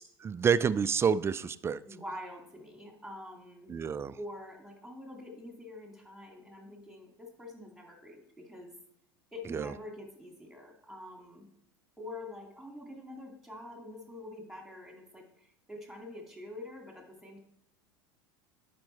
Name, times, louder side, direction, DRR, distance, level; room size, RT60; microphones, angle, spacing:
voice 1, 0.2-1.8 3.7-4.2 9.5-9.7, right 6 dB, 20° right, 15 dB, 0.4 m, -28 dB
voice 2, 1.8-3.8 4.2-8.7 9.3-11.5 12.0-17.4, left 1 dB, ahead, 1 dB, 2.4 m, -46 dB
10.5 x 5.2 x 4.4 m, 0.74 s
hypercardioid pair, 80°, 13 cm